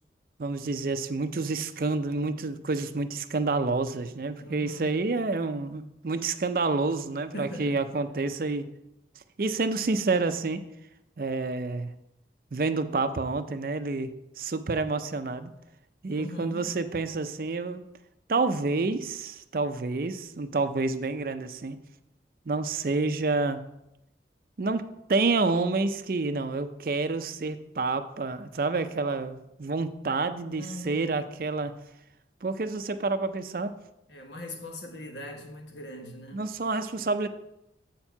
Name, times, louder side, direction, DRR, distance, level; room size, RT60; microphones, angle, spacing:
voice 1, 0.4-8.7 9.4-10.6 11.2-11.9 12.5-14.1 14.4-15.5 16.0-17.8 18.3-21.8 22.5-23.6 24.6-24.8 25.1-31.7 32.4-33.7 36.3-37.3, right 3 dB, 55° right, 0.5 m, -28 dB
voice 2, 4.4-5.0 7.3-7.8 16.1-16.7 30.6-31.2 34.1-36.4, left 1 dB, 85° left, 1.2 m, -40 dB
7.7 x 4.4 x 5.8 m
head